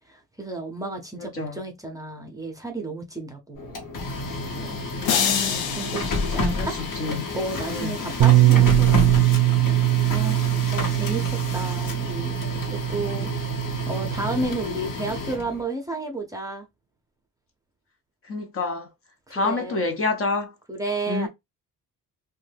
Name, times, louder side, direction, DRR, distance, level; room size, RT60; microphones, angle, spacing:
voice 1, 0.1-3.9 4.5-4.8 5.8-6.8 7.3-9.2 10.1-13.3 13.9-16.7 19.3-19.8 20.7-21.3, right 2 dB, 10° right, 0.6 m, -32 dB
voice 2, 1.2-1.6 4.9-5.6 6.5-6.7 7.0-7.3 7.7-8.0 18.3-18.9 19.3-20.5 21.1-21.3, left 3 dB, 40° left, 0.6 m, -28 dB
Printer, 3.6-15.6, left 2 dB, 60° left, 1.0 m, -30 dB
sound 1, 5.0-7.3, left 8 dB, 85° left, 0.6 m, -27 dB
Bass guitar, 8.2-14.4, right 16 dB, 60° right, 0.4 m, -21 dB
2.6 x 2.2 x 3.3 m
wide cardioid pair, 155°, 36 cm